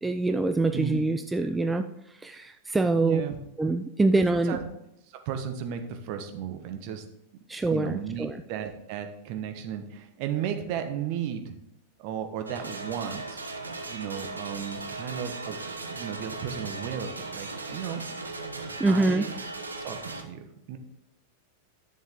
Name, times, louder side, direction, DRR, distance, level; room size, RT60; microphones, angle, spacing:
voice 1, 0.0-1.8 2.2-3.2 3.6-4.6 7.5-8.4 18.8-19.3, right 2 dB, 10° right, 8 dB, 0.4 m, -25 dB
voice 2, 0.7-1.0 2.9-3.4 4.1-4.2 4.5-4.6 5.1-7.0 7.7-11.5 12.0-13.4 13.9-15.6 15.9-18.0 18.9-19.3 19.8-20.8, right 8 dB, 45° right, 7 dB, 1.1 m, -34 dB
sound 1, 12.5-20.2, right 3 dB, 75° right, 0.9 m, -37 dB
9.9 x 7.3 x 3.7 m, 0.80 s
figure-of-eight pair, 90°, 0 cm